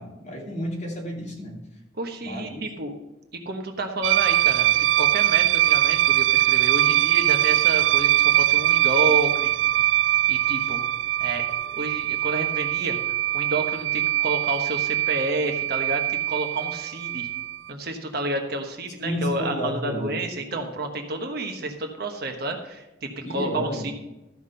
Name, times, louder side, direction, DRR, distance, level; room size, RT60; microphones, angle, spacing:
voice 1, 0.0-1.6 2.2-2.6 19.0-20.2 23.2-23.9, equal, 40° left, -2 dB, 2.8 m, -31 dB
voice 2, 2.0-2.9 3.3-4.7 5.0-9.5 10.3-10.8 11.2-11.4 11.7-13.0 13.3-17.3 17.7-23.9, right 2 dB, 55° right, 4 dB, 1.3 m, -30 dB
sound 1, 4.0-17.7, right 14 dB, 70° right, 0.3 m, -22 dB
13.5 x 6.0 x 5.6 m, 0.97 s
head